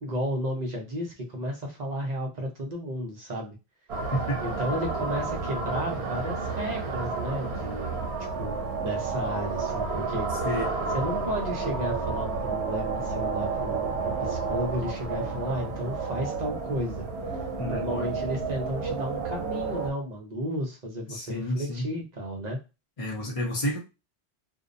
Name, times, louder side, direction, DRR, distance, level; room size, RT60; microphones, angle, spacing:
voice 1, 0.0-3.6 4.4-8.0 8.4-10.3 10.9-17.0 17.3-17.4 17.7-22.6, equal, 45° right, 1 dB, 0.8 m, -33 dB
sound 1, 3.9-19.9, right 4 dB, 90° right, 0.9 m, -31 dB
voice 2, 17.6-18.2 21.1-21.9 23.0-23.8, left 1 dB, 40° left, -2 dB, 0.6 m, -31 dB
2.6 x 2.0 x 2.5 m, 0.27 s
omnidirectional pair, 1.1 m